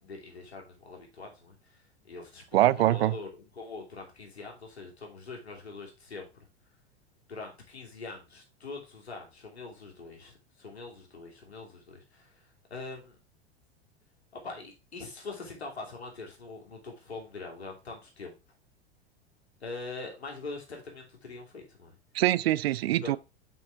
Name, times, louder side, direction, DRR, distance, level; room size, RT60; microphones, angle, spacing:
voice 1, 0.0-6.4 7.3-13.2 14.3-18.4 19.6-22.0 23.0-23.2, left 3 dB, 85° left, 2.7 m, -43 dB
voice 2, 2.5-3.2 22.1-23.2, right 14 dB, 70° right, 0.5 m, -24 dB
7.3 x 5.6 x 3.4 m
hypercardioid pair, 95°, 32 cm